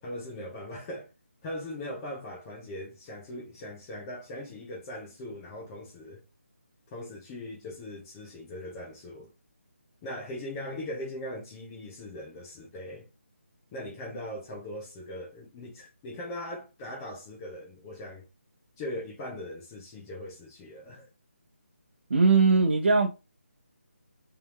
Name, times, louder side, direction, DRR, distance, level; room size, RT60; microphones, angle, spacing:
voice 1, 0.0-1.1 1.4-6.2 6.9-9.3 10.0-13.1 13.7-18.2 18.8-21.1, left 1 dB, 15° left, 0.9 m, -40 dB
voice 2, 22.1-23.1, right 4 dB, 50° right, 0.9 m, -20 dB
3.5 x 3.4 x 3.1 m
figure-of-eight pair, 155°, 7 cm